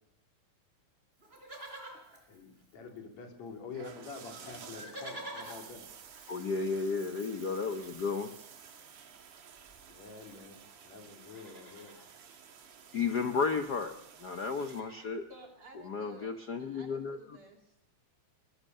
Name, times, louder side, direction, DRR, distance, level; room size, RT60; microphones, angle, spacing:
Livestock farm animals working animals, 1.2-3.2 3.5-3.6 3.8-10.7 11.2-12.1 13.3-13.4 13.6-13.8 14.2-15.2 15.8-15.9, right 1 dB, 20° right, 4.3 m, -51 dB
voice 1, 2.3-5.9 9.9-12.0, left 4 dB, 65° left, 2 dB, 4.3 m, -47 dB
sound 1, 3.7-14.8, right 7 dB, 85° right, 3.5 m, -53 dB
voice 2, 6.3-8.3 12.9-15.3 15.8-17.2, left 5 dB, 85° left, 6 dB, 0.8 m, -33 dB
voice 3, 15.3-16.3 16.6-18.0, equal, 45° right, 2 dB, 3.4 m, -54 dB
22.0 x 21.0 x 6.6 m, 0.78 s
omnidirectional pair, 3.4 m